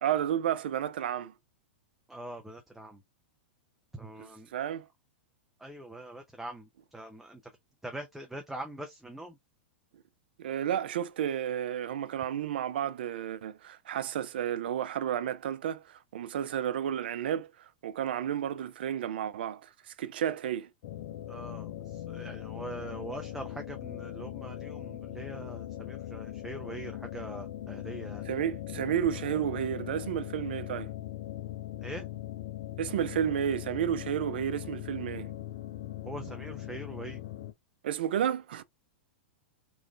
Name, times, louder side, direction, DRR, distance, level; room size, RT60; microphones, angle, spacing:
voice 1, 0.0-1.3 4.2-4.9 10.4-20.7 28.3-30.9 32.8-35.3 37.8-38.6, right 10 dB, 65° right, 0.4 m, -32 dB
voice 2, 2.1-3.0 3.9-4.5 5.6-7.4 7.8-9.4 21.3-28.2 31.8-32.1 36.0-37.2, right 1 dB, 5° right, 0.5 m, -43 dB
sound 1, 20.8-37.5, left 13 dB, 55° left, 0.4 m, -40 dB
3.1 x 2.4 x 2.4 m
hypercardioid pair, 100°, 6 cm